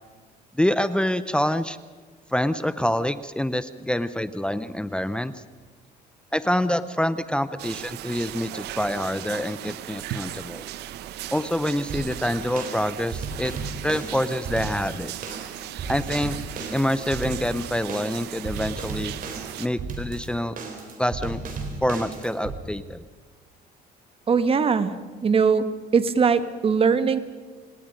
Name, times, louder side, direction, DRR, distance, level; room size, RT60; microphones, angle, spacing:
voice 1, 0.5-1.8 2.3-5.4 6.3-10.7 11.3-13.5 13.8-15.1 15.9-16.4 16.7-19.1 19.6-20.6 21.0-21.4 21.8-23.0, left 1 dB, 5° left, 13 dB, 0.6 m, -26 dB
sound 1, 7.6-19.7, right 13 dB, 80° right, 0.9 m, -37 dB
sound 2, 11.9-22.6, right 4 dB, 55° right, 4.1 m, -35 dB
voice 2, 24.3-24.9 25.2-25.7 25.9-27.2, right 5 dB, 35° right, 12 dB, 1.4 m, -20 dB
28.0 x 18.0 x 5.3 m, 1.4 s
cardioid pair, 110°, 17 cm